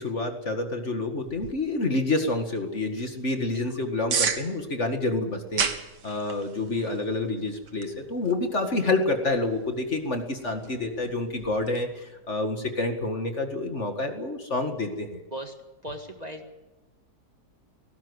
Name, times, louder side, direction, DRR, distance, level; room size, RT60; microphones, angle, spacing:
voice 1, 0.0-5.7 6.0-15.2, left 2 dB, 45° left, 5 dB, 2.2 m, -28 dB
sound 1, 1.2-11.8, right 6 dB, 85° right, 2.1 m, -36 dB
voice 2, 15.8-16.6, right 1 dB, 25° right, 4 dB, 2.0 m, -37 dB
18.5 x 17.5 x 8.1 m, 1.1 s
omnidirectional pair, 1.8 m